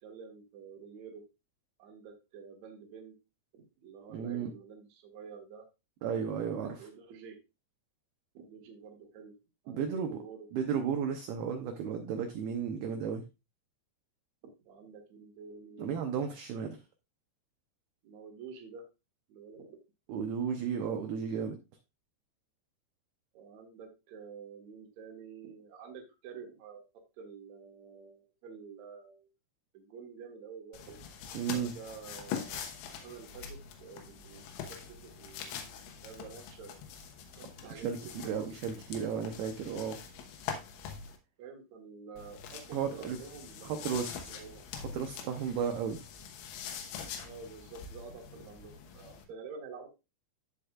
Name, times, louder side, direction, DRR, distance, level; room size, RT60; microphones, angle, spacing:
voice 1, 0.0-1.2 1.8-3.1 3.5-5.6 6.4-7.4 8.3-9.3 9.6-10.5 14.6-16.1 18.0-18.8 19.3-19.8 23.3-26.8 27.2-29.3 29.7-31.0 31.5-36.8 37.3-37.9 38.2-38.5 41.4-43.9 44.3-44.6 47.2-49.9, right 5 dB, 55° right, 2 dB, 2.0 m, -49 dB
voice 2, 4.1-4.5 6.0-6.9 9.7-10.2 10.5-13.3 15.8-16.8 20.1-21.6 31.3-31.7 37.8-40.0 42.7-43.2 43.6-44.1 44.8-46.0, right 7 dB, 80° right, 4 dB, 2.2 m, -34 dB
sound 1, 30.7-41.2 42.2-49.2, left 7 dB, 90° left, 3.6 m, -44 dB
14.5 x 5.1 x 2.4 m, 0.26 s
omnidirectional pair, 5.5 m